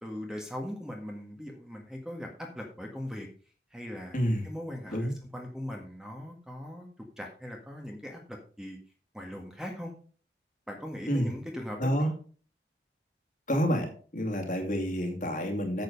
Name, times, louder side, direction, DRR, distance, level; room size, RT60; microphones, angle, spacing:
voice 1, 0.0-3.3 3.7-6.9 7.2-8.8 9.1-9.9 10.7-12.1, equal, 5° right, 1 dB, 1.6 m, -40 dB
voice 2, 4.1-4.5 4.9-5.1 11.1-11.3 11.8-12.1 13.5-15.8, equal, 45° left, 3 dB, 2.4 m, -28 dB
9.2 x 7.9 x 5.2 m, 0.41 s
head